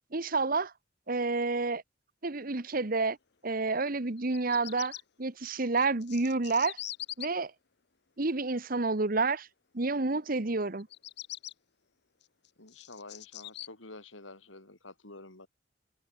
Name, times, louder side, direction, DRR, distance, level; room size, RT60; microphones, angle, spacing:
voice 1, 0.1-0.7 1.1-1.8 2.2-3.2 3.4-6.8 7.2-7.5 8.2-9.5 9.7-10.9, right 3 dB, 45° right, 1.2 m, -29 dB
Bird vocalization bird call bird song, 4.2-5.0 5.8-7.3 10.8-11.5 12.2-13.7, left 13 dB, 60° left, 0.9 m, -42 dB
voice 2, 12.6-15.5, left 2 dB, 85° left, 4.6 m, -49 dB
head